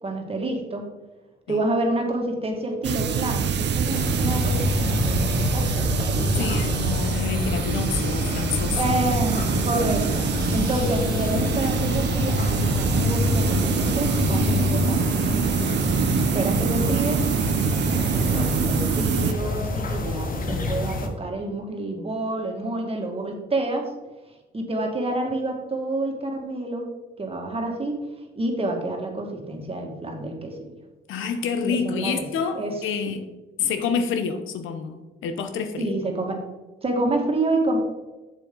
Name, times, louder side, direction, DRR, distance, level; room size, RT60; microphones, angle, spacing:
voice 1, 0.0-0.9 1.5-6.5 8.8-10.3 10.5-15.0 15.9-17.2 18.1-23.9 24.5-26.9 27.2-28.1 28.4-30.7 31.6-32.2 32.5-32.8 33.6-33.7 35.8-36.4 36.8-37.8, right 2 dB, 30° right, 2 dB, 1.9 m, -28 dB
sound 1, 2.8-19.3, right 7 dB, 60° right, 0.7 m, -25 dB
sound 2, 3.9-21.1, left 3 dB, 45° left, 1.4 m, -26 dB
voice 2, 6.4-9.3 31.1-33.2 33.6-35.9, left 6 dB, 85° left, 8 dB, 0.9 m, -28 dB
7.5 x 7.3 x 3.8 m, 1.1 s
cardioid pair, 90°, 20 cm